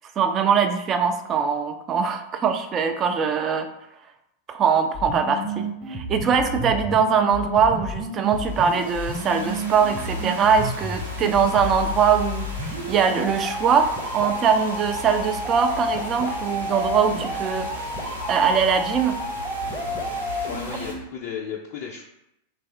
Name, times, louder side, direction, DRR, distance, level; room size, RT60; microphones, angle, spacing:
voice 1, 0.2-3.7 4.5-17.9 18.3-19.2, right 6 dB, 30° right, 7 dB, 0.3 m, -22 dB
sound 1, 4.9-21.0, equal, 10° right, 0.7 m, -31 dB
sound 2, 8.3-20.9, left 1 dB, 85° right, 0.7 m, -37 dB
voice 2, 20.5-22.0, left 7 dB, 45° left, -1 dB, 0.4 m, -34 dB
3.0 x 2.6 x 3.2 m, 0.83 s
figure-of-eight pair, 90°, 0 cm